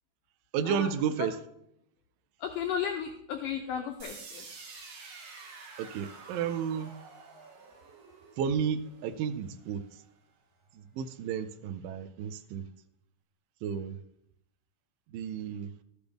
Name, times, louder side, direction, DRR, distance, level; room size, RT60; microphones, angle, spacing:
voice 1, 0.5-1.4 5.8-6.9 8.4-9.8 10.7-12.7 13.6-14.0 15.1-15.7, right 7 dB, 85° right, 10 dB, 2.0 m, -32 dB
voice 2, 2.4-4.5, left 8 dB, 85° left, 4 dB, 1.9 m, -34 dB
sound 1, 4.0-9.9, right 4 dB, 65° right, 3.1 m, -49 dB
13.5 x 8.1 x 3.5 m, 0.76 s
omnidirectional pair, 4.6 m